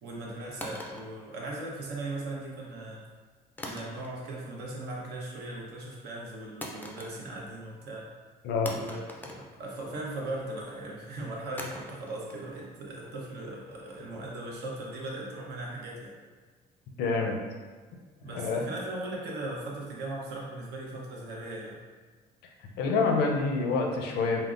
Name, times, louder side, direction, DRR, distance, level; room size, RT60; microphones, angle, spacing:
voice 1, 0.0-3.0 3.6-8.1 8.7-16.2 18.2-21.8, right 2 dB, 75° right, -3 dB, 0.8 m, -38 dB
sound 1, 0.6-2.0 3.6-4.4 4.7-5.2 6.6-7.6 7.8-7.9 8.7-10.2 11.6-14.6, left 1 dB, 10° left, 0.3 m, -44 dB
voice 2, 17.0-17.4 18.3-18.6 22.8-24.4, left 4 dB, 80° left, 1 dB, 0.5 m, -27 dB
3.6 x 2.0 x 2.4 m, 1.4 s
cardioid pair, 110°, 17 cm